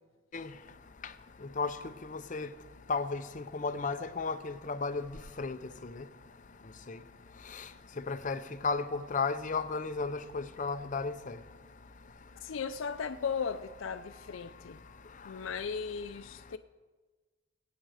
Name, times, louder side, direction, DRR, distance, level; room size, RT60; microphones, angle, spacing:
voice 1, 2.1-2.5 2.9-5.1 5.4-5.6 6.9-7.0 8.1-11.3, left 4 dB, 40° left, 0.7 m, -33 dB
voice 2, 12.4-14.8 15.2-16.6, left 6 dB, 85° left, 0.5 m, -36 dB
21.5 x 9.1 x 5.0 m
head